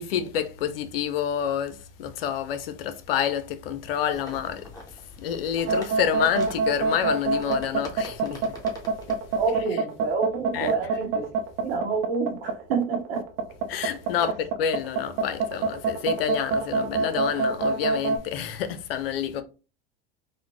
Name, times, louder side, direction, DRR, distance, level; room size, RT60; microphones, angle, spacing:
voice 1, 0.0-4.7 5.2-8.5 10.5-10.7 13.7-19.4, left 9 dB, 80° left, 0.6 m, -28 dB
sound 1, 4.1-9.6, left 1 dB, 15° left, 1.3 m, -44 dB
sound 2, 5.6-18.2, right 5 dB, 50° right, 0.7 m, -26 dB
voice 2, 9.4-11.3 11.6-13.2 14.1-14.3, right 5 dB, 85° right, 1.2 m, -28 dB
4.1 x 2.2 x 3.0 m
hypercardioid pair, 95°, 29 cm